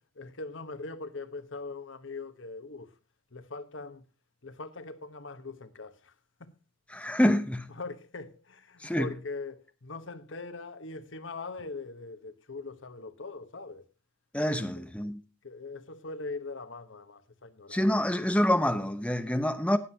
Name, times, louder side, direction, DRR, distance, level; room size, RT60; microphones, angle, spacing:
voice 1, 0.2-2.9 3.3-4.0 4.4-6.1 6.4-6.6 7.7-13.9 14.6-14.9 15.4-17.9, left 3 dB, 75° left, 1.1 m, -41 dB
voice 2, 6.9-7.7 8.8-9.1 14.3-15.2 17.7-19.8, left 1 dB, 5° left, 0.8 m, -26 dB
19.5 x 7.5 x 2.8 m
head